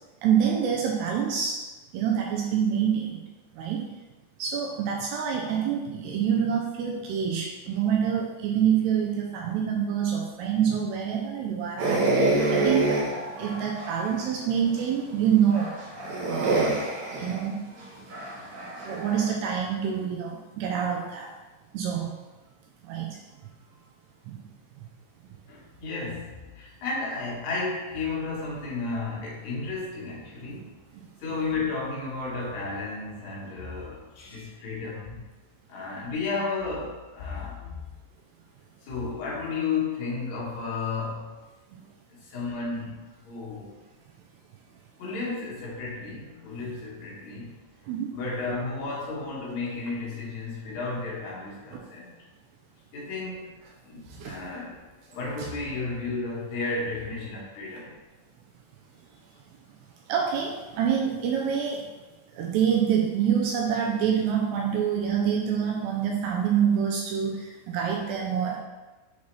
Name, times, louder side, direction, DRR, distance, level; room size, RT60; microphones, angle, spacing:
voice 1, 0.2-1.6 1.9-3.2 3.5-3.8 4.4-12.1 12.5-13.0 13.4-15.8 16.2-16.8 17.2-17.6 18.8-21.3 21.7-22.2 22.8-23.2 24.3-24.4 30.5-30.7 30.9-31.0 41.7-41.8 47.9-48.1 51.7-51.8 54.1-54.4 55.4-55.5 60.1-61.9 62.4-68.6, right 8 dB, 80° right, 0 dB, 2.5 m, -26 dB
sound 1, 11.8-14.2 14.8-14.9 15.5-19.3, right 2 dB, 60° right, 2.4 m, -27 dB
voice 2, 25.5-30.8 31.2-35.2 35.7-37.8 38.8-41.4 42.1-43.8 45.0-47.6 48.1-52.1 52.9-53.6 53.8-54.8 55.1-58.0, left 3 dB, 65° left, -5 dB, 1.8 m, -33 dB
7.1 x 4.2 x 3.2 m, 1.2 s
omnidirectional pair, 5.3 m